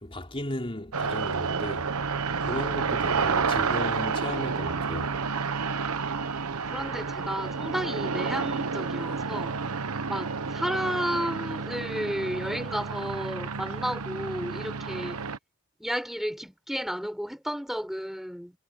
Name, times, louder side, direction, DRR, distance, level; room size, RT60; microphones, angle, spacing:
voice 1, 0.0-1.9 2.4-5.2, left 1 dB, 25° left, 4.0 m, -35 dB
sound 1, 0.9-15.4, right 5 dB, 80° right, 1.0 m, -30 dB
voice 2, 6.7-9.5 10.1-15.2 15.8-18.5, equal, ahead, 6.6 m, -32 dB
head